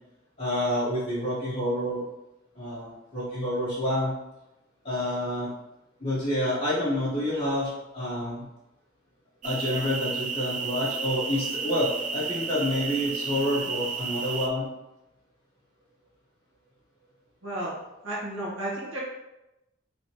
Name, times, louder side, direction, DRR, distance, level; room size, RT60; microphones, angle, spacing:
voice 1, 0.4-2.0 2.5-4.1 4.8-5.5 6.0-8.5 9.4-14.7, left 1 dB, 30° left, -14 dB, 1.5 m, -28 dB
sound 1, 9.4-14.5, right 5 dB, 40° right, 0.4 m, -32 dB
voice 2, 17.4-17.8 18.0-19.0, right 1 dB, 75° right, -7 dB, 1.4 m, -32 dB
3.9 x 3.8 x 3.1 m, 0.94 s
head